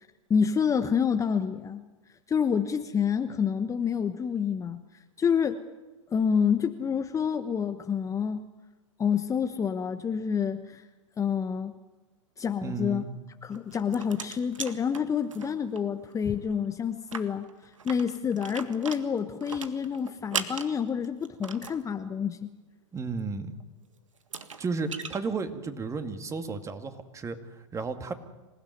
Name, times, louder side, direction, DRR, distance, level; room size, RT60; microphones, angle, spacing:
voice 1, 0.3-1.8 2.3-4.8 5.2-5.6 6.1-8.5 9.0-10.8 11.2-11.7 12.4-13.0 13.4-17.5 17.8-22.5, left 7 dB, 20° left, 8 dB, 1.1 m, -28 dB
voice 2, 12.6-13.1 22.9-23.6 24.6-28.1, right 4 dB, 20° right, 7 dB, 2.3 m, -33 dB
sound 1, 13.5-15.8 16.1-16.2 16.5-16.6 17.0-21.8 23.6-23.7 24.2-25.2, right 6 dB, 85° right, 1.8 m, -38 dB
26.5 x 16.5 x 9.4 m, 1.1 s
hypercardioid pair, 105°, 16 cm